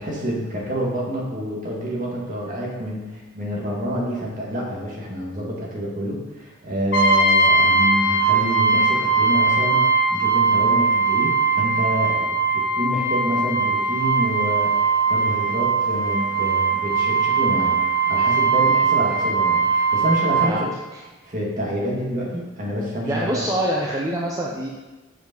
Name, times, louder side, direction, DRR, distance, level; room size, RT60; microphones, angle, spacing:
voice 1, 0.0-17.8 18.1-20.7 21.2-23.4, equal, 40° right, -4 dB, 1.8 m, -27 dB
Brass instrument, 6.9-20.5, right 4 dB, 55° left, 0.9 m, -20 dB
voice 2, 23.1-24.7, right 1 dB, 15° right, -3 dB, 0.6 m, -25 dB
6.0 x 5.2 x 5.3 m, 1.2 s
head